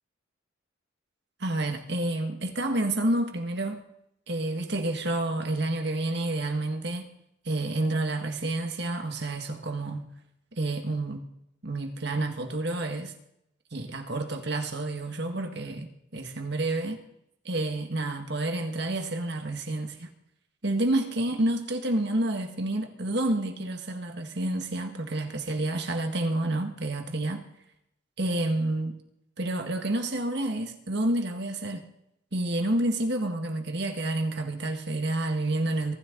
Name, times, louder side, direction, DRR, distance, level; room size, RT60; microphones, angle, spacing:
voice 1, 1.4-3.8 4.3-7.1 7.5-10.1 10.6-11.2 11.6-13.1 13.7-17.0 17.5-20.1 20.6-27.4 28.2-29.0 29.4-31.8 32.3-35.9, right 2 dB, 55° right, 1.9 m, -29 dB
23.5 x 13.0 x 4.0 m
head